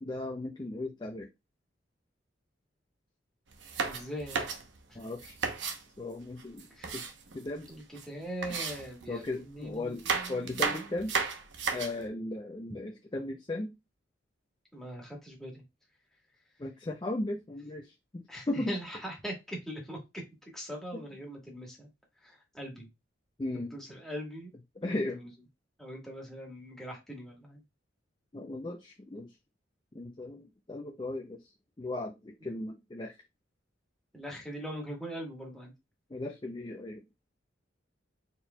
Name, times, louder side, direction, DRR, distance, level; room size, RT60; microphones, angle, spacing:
voice 1, 0.0-1.3 5.0-5.4 6.0-6.7 6.9-7.0 7.3-7.7 9.1-10.0 10.3-11.2 11.7-13.7 16.6-18.8 20.9-21.0 23.4-23.7 24.8-25.2 28.3-29.3 29.9-31.4 31.8-33.1 36.1-37.0, left 2 dB, 25° left, 0.4 m, -36 dB
sound 1, 3.5-5.8 6.4-7.7 8.0-8.1 8.4-9.4 9.8-12.1, right 5 dB, 70° right, 0.8 m, -34 dB
voice 2, 3.9-4.5 4.9-5.0 6.8-7.0 7.7-10.8 14.7-15.6 18.3-20.0 20.5-21.9 22.2-22.9 23.5-24.5 24.8-25.3 25.8-27.6 34.1-35.7, equal, ahead, 1.4 m, -41 dB
4.2 x 4.1 x 2.2 m
head